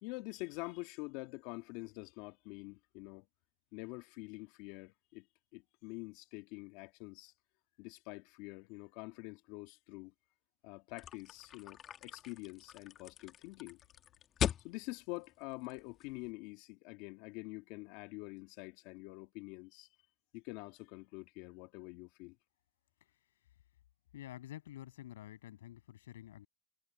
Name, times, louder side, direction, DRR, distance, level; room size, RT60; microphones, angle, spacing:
voice 1, 0.0-3.3 3.7-5.3 5.5-7.3 7.8-10.1 10.6-13.8 14.6-19.9 20.3-22.4, left 24 dB, 70° left, 1.9 m, -46 dB
sound 1, 11.0-16.3, left 10 dB, 45° left, 1.7 m, -41 dB
voice 2, 24.1-26.5, left 13 dB, 85° left, 7.6 m, -49 dB
hypercardioid pair, 85°, 0 cm